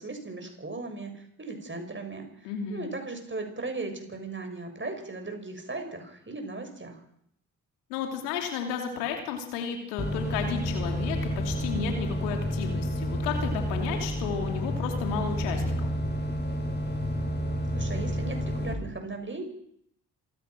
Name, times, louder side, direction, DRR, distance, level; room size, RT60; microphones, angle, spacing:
voice 1, 0.0-7.0 17.7-19.4, right 3 dB, 25° right, 5 dB, 6.9 m, -37 dB
voice 2, 2.4-2.9 7.9-15.9, left 6 dB, 75° left, 4 dB, 3.1 m, -33 dB
sound 1, 10.0-18.7, equal, 20° left, 6.7 m, -30 dB
27.0 x 16.0 x 6.1 m, 0.71 s
figure-of-eight pair, 40°, 48 cm